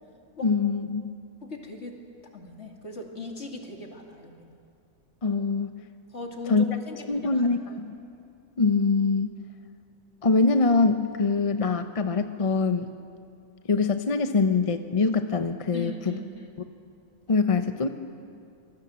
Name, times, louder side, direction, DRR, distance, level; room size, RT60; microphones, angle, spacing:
voice 1, 0.4-1.0 5.2-5.7 6.5-6.7 7.1-7.9 8.6-9.3 10.2-12.9 13.7-16.2 17.3-17.9, left 4 dB, 30° left, 8 dB, 0.7 m, -23 dB
voice 2, 1.4-2.0 2.3-4.5 6.1-7.8 15.7-16.5, left 2 dB, 55° left, 1 dB, 2.7 m, -39 dB
26.0 x 19.5 x 7.6 m, 2.5 s
omnidirectional pair, 1.4 m